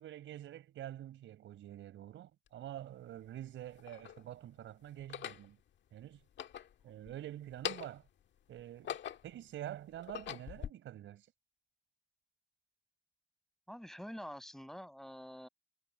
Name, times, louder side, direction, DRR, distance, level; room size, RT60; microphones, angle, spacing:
voice 1, 0.0-5.6 5.9-6.2 6.8-8.0 8.5-9.0 9.2-11.3, right 12 dB, 75° right, 4.9 m, -47 dB
sound 1, 2.5-2.6 3.4-4.2 5.0-5.5 6.2-7.2 7.5-8.1 8.6-9.4 9.9-10.7, left 9 dB, 65° left, 1.7 m, -43 dB
voice 2, 13.7-15.5, equal, ahead, 6.7 m, -47 dB
cardioid pair, 90°, 20 cm